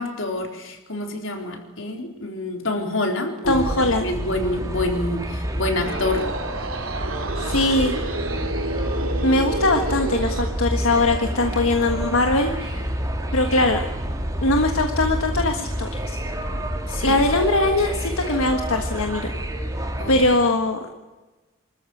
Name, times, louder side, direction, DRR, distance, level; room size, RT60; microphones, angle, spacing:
voice 1, 0.0-6.3 16.9-17.2 20.0-20.1, left 2 dB, 70° left, 3 dB, 3.9 m, -27 dB
sound 1, 3.4-20.4, equal, 15° right, 2.2 m, -28 dB
voice 2, 3.5-4.1 7.4-7.9 9.2-12.9 13.3-13.8 14.4-16.2 17.0-19.3 20.1-20.9, left 2 dB, 90° left, 5 dB, 1.5 m, -21 dB
sound 2, 5.6-10.6, right 2 dB, 85° right, 2.9 m, -29 dB
25.5 x 14.0 x 9.2 m, 1.2 s
head